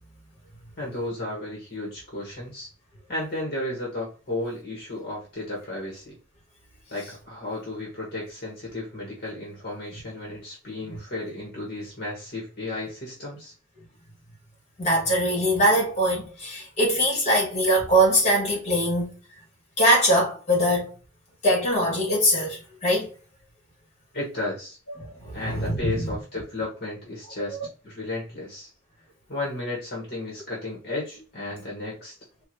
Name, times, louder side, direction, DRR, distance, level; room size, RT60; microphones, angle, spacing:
voice 1, 0.8-2.7 3.1-6.2 6.9-13.5 24.1-24.8 25.3-27.6 27.8-28.7 29.3-32.2, left 2 dB, 55° left, 1.7 m, -33 dB
voice 2, 14.8-19.1 19.8-20.9 21.4-23.1 25.0-26.2, equal, 35° left, 2.2 m, -22 dB
4.6 x 2.8 x 2.9 m
head